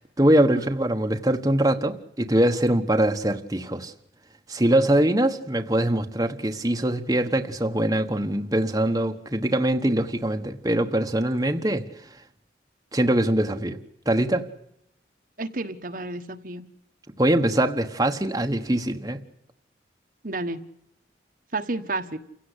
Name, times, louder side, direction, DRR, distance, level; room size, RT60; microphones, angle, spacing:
voice 1, 0.0-3.9 4.5-11.8 12.9-13.8 14.1-14.5 17.2-19.2, right 1 dB, 20° right, 1.2 m, -23 dB
voice 2, 15.4-16.7 20.2-20.6 21.5-22.2, right 2 dB, 50° right, 1.3 m, -31 dB
28.5 x 16.5 x 8.2 m
head